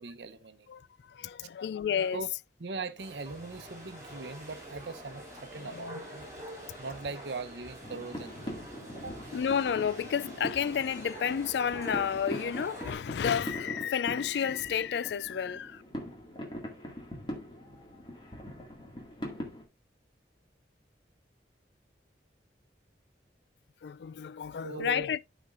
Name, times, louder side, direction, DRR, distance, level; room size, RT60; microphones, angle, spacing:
voice 1, 0.0-0.7 1.4-1.5 2.1-2.3 2.6-6.3 6.8-8.7 8.9-9.2 24.6-25.1, right 3 dB, 75° right, 0.8 m, -40 dB
voice 2, 0.7-2.2 5.6-6.0 9.3-15.8 23.8-25.2, left 8 dB, 70° left, 0.3 m, -31 dB
sound 1, 3.0-12.9, right 1 dB, 15° right, 3.6 m, -46 dB
sound 2, 7.8-19.6, equal, 25° left, 2.0 m, -42 dB
13.0 x 5.1 x 2.5 m
head